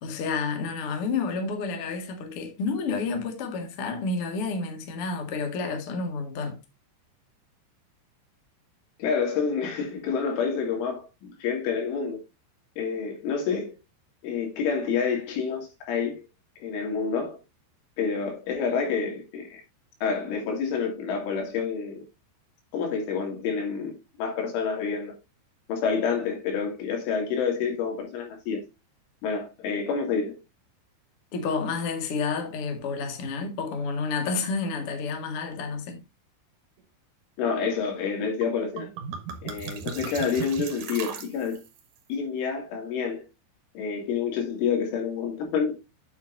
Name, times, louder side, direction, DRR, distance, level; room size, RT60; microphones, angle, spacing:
voice 1, 0.0-6.6 31.3-36.0, left 4 dB, 50° left, 1.7 m, -30 dB
voice 2, 9.0-12.2 12.8-13.7 14.2-16.2 16.6-17.4 18.0-19.6 20.0-22.0 22.7-25.2 25.7-28.6 29.2-30.4 37.4-38.9 39.4-41.6 42.1-43.2 43.7-45.7, left 6 dB, 85° left, 5.0 m, -28 dB
sound 1, 38.4-38.5 38.8-41.8, right 7 dB, 60° right, 2.3 m, -37 dB
9.0 x 7.6 x 2.6 m
omnidirectional pair, 5.4 m